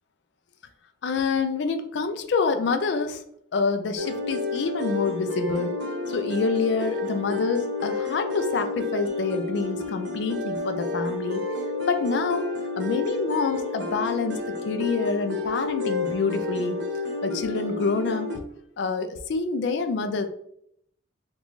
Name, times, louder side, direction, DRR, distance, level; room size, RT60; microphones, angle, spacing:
voice 1, 1.0-3.2 3.5-5.8 6.1-11.4 11.8-12.5 12.8-16.8 17.2-18.4 18.8-20.3, left 4 dB, 60° left, 8 dB, 0.3 m, -27 dB
sound 1, 4.0-18.4, left 3 dB, 60° right, 0.8 m, -30 dB
3.9 x 2.3 x 3.0 m, 0.71 s
head